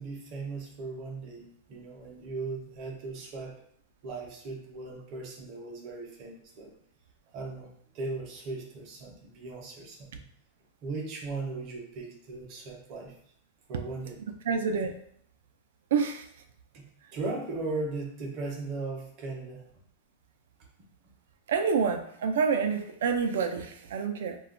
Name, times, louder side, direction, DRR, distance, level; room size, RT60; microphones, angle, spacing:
voice 1, 0.0-3.6 4.0-6.7 7.3-10.2 10.8-13.1 13.7-14.2 16.7-16.8 17.1-19.7, right 3 dB, 30° right, 0 dB, 0.6 m, -38 dB
voice 2, 14.4-15.0 15.9-16.3 17.0-17.1 21.5-24.4, right 5 dB, 80° right, 6 dB, 0.4 m, -28 dB
2.2 x 2.1 x 3.6 m, 0.64 s
supercardioid pair, 175°, 0 cm